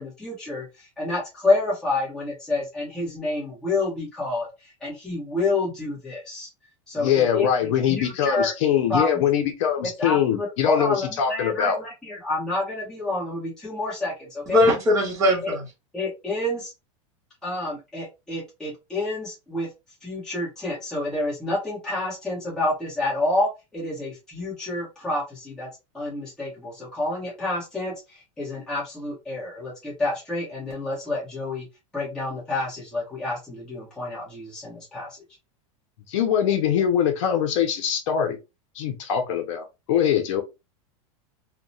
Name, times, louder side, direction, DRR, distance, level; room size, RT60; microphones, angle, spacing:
voice 1, 0.0-6.5 6.9-8.5 8.9-9.1 9.8-14.4 15.4-15.5 15.9-16.7 17.4-19.7 20.0-25.7 25.9-31.6 31.9-35.2, left 2 dB, 5° left, 1.2 m, -28 dB
voice 2, 7.0-11.8 36.1-38.4 38.8-40.4, left 9 dB, 65° left, 0.6 m, -23 dB
voice 3, 14.5-15.6, left 1 dB, 20° right, 1.0 m, -20 dB
2.8 x 2.1 x 2.6 m
supercardioid pair, 160°, 17 cm